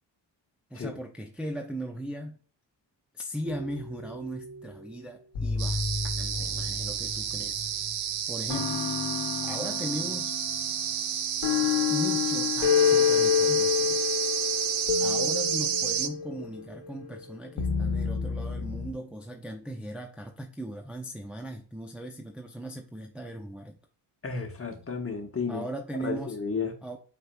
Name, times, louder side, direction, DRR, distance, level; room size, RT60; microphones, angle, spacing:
voice 1, 0.7-2.4 3.1-5.9 6.1-7.7 8.3-8.9 9.4-10.3 11.9-14.0 15.0-23.8 25.5-26.4 26.8-27.0, equal, ahead, 0.6 m, -38 dB
sound 1, 3.5-4.7 5.4-7.9 8.5-18.9, left 7 dB, 90° left, 1.1 m, -29 dB
sound 2, 5.6-16.1, right 9 dB, 65° right, 0.7 m, -30 dB
voice 2, 24.2-25.7 26.0-26.7, left 5 dB, 25° left, 1.3 m, -32 dB
4.6 x 4.5 x 2.3 m
cardioid pair, 60°, 49 cm